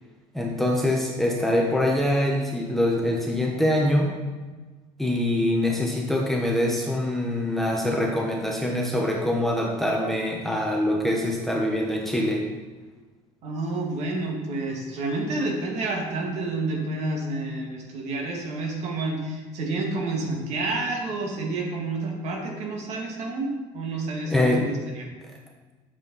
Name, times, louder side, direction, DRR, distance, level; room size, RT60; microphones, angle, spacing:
voice 1, 0.3-4.1 5.0-12.5 24.3-24.7, left 1 dB, ahead, -1 dB, 1.0 m, -24 dB
voice 2, 13.4-25.1, right 2 dB, 55° right, 0 dB, 2.1 m, -29 dB
8.7 x 7.3 x 4.0 m, 1.3 s
cardioid pair, 145°, 14 cm